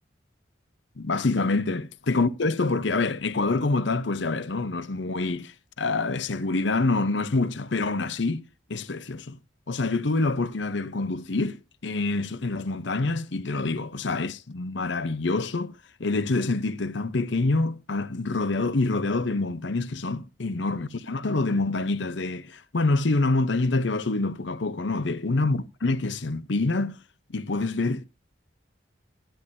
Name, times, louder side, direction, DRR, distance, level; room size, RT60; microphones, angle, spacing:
voice 1, 1.0-8.4 8.7-9.4 9.7-15.7 16.0-27.0 27.3-28.1, left 3 dB, 70° left, 0.8 m, -26 dB
15.0 x 10.5 x 2.7 m
head